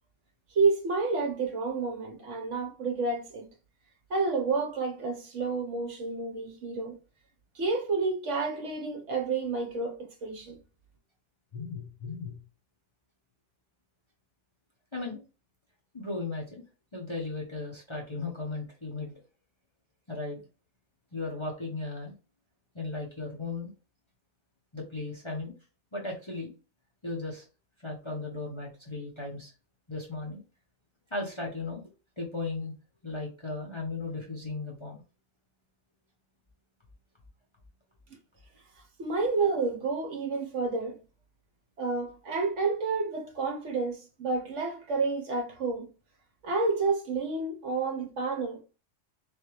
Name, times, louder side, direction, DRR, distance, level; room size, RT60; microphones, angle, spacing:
voice 1, 0.5-3.5 4.1-7.0 7.5-10.6 39.0-41.0 41.8-45.9 46.4-48.6, right 4 dB, 60° right, 1.2 m, -30 dB
voice 2, 11.5-12.4 14.9-15.2 15.9-16.6 16.9-19.1 20.1-20.4 21.1-22.1 22.7-23.7 24.7-25.6 25.9-26.5 27.0-27.4 27.8-29.5 29.9-30.4 31.1-31.9 32.2-32.7 33.0-35.0, left 3 dB, 25° left, 0.8 m, -36 dB
4.0 x 3.5 x 3.1 m
omnidirectional pair, 1.5 m